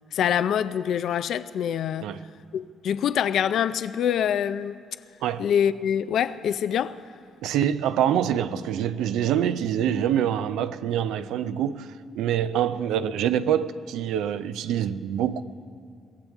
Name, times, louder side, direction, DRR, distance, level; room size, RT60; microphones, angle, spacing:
voice 1, 0.1-2.2 2.5-4.8 5.4-7.0, left 9 dB, 70° left, 0.4 m, -25 dB
voice 2, 7.4-11.9 12.1-15.4, right 10 dB, 90° right, 0.5 m, -25 dB
23.0 x 16.5 x 3.6 m
cardioid pair, 90°, 0 cm